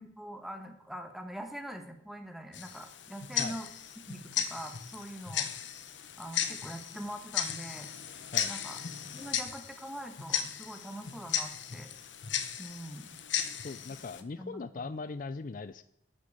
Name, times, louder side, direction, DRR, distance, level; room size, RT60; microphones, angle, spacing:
voice 1, 0.0-3.7 4.1-5.5 6.2-7.9 8.5-8.8 9.1-11.9 12.6-13.2 14.4-14.9, equal, ahead, 5 dB, 1.4 m, -43 dB
Tick-tock, 2.5-14.2, left 9 dB, 75° left, 1.0 m, -36 dB
voice 2, 13.6-15.8, left 4 dB, 45° left, 13 dB, 0.4 m, -39 dB
11.5 x 6.7 x 8.1 m, 0.74 s
head